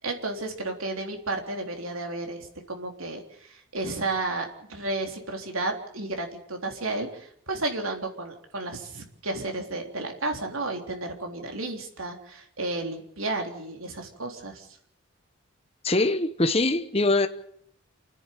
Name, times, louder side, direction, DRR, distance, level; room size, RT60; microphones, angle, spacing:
voice 1, 0.0-14.8, right 2 dB, 80° right, 3.7 m, -32 dB
voice 2, 15.8-17.3, left 2 dB, 30° left, 1.1 m, -23 dB
29.5 x 10.5 x 9.4 m
head